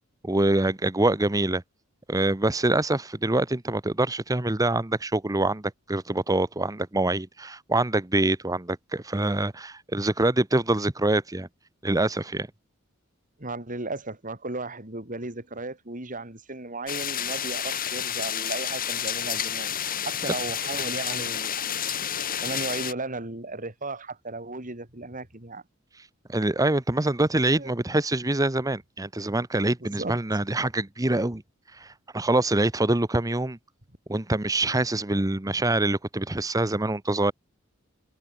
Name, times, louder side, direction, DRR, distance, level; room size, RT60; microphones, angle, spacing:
voice 1, 0.2-1.6 2.1-11.5 11.8-12.5 26.3-31.4 31.8-33.6 34.1-37.3, right 2 dB, 15° right, 1.0 m, -25 dB
voice 2, 13.4-19.7 20.0-22.0 22.4-25.6 27.5-27.7 29.8-30.2, right 2 dB, 40° right, 3.7 m, -35 dB
sound 1, 16.9-22.9, left 9 dB, 45° left, 4.0 m, -30 dB
head